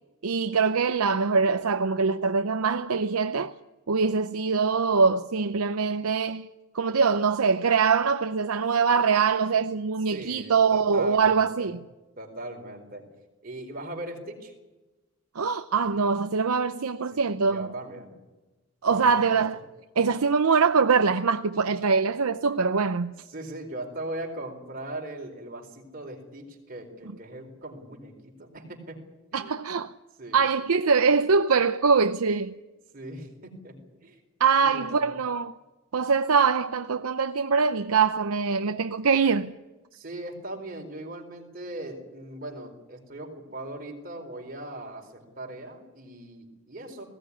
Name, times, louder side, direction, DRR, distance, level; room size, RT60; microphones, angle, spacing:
voice 1, 0.2-3.5 3.9-6.5 6.7-11.8 15.3-17.7 18.8-19.6 20.0-23.1 29.3-29.9 30.3-32.5 34.4-35.6 35.9-39.5, right 5 dB, 90° right, 0.7 m, -23 dB
voice 2, 10.1-11.8 12.2-13.1 13.4-14.5 17.1-18.2 18.9-19.4 23.3-29.0 29.3-29.6 30.2-30.4 32.9-34.2 34.6-35.1 39.9-47.0, right 1 dB, 40° right, 4.3 m, -39 dB
19.5 x 17.0 x 9.7 m
head